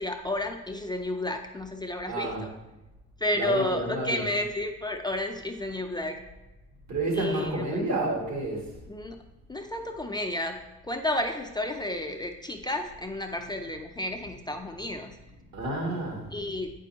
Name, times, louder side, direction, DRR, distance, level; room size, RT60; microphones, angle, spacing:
voice 1, 0.0-2.5 3.2-6.2 7.1-7.8 8.9-9.2 9.5-15.2 16.3-16.7, left 1 dB, 15° left, 4 dB, 0.5 m, -31 dB
voice 2, 2.1-2.4 3.3-4.2 6.9-8.7 15.5-16.3, right 2 dB, 65° right, 0 dB, 2.0 m, -30 dB
8.3 x 5.3 x 2.8 m, 1.0 s
cardioid pair, 90°, 30 cm